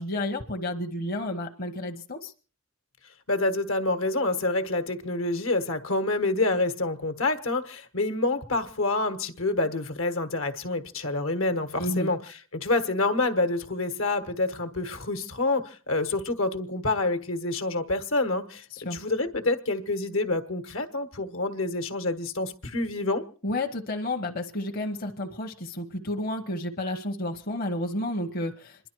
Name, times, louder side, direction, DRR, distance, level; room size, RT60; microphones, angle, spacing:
voice 1, 0.0-2.3 11.8-12.1 18.7-19.0 23.4-28.9, left 1 dB, 45° left, 4 dB, 0.9 m, -31 dB
voice 2, 3.3-18.6 18.9-23.2, left 2 dB, 75° left, 8 dB, 1.4 m, -27 dB
27.0 x 11.0 x 4.6 m, 0.40 s
head